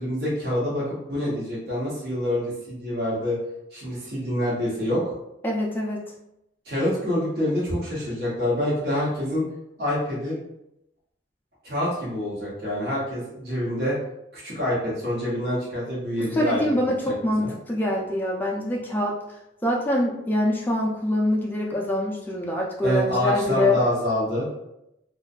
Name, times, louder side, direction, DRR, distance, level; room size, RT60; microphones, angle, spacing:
voice 1, 0.0-3.4 3.7-5.0 6.6-9.4 9.8-10.4 11.6-13.9 14.3-16.6 16.9-17.1 17.4-17.5 22.8-24.6, left 1 dB, 55° right, -8 dB, 0.9 m, -26 dB
voice 2, 5.4-6.1 16.3-19.2 19.6-23.8, left 1 dB, 10° left, -2 dB, 0.3 m, -24 dB
2.6 x 2.2 x 2.2 m, 0.85 s
head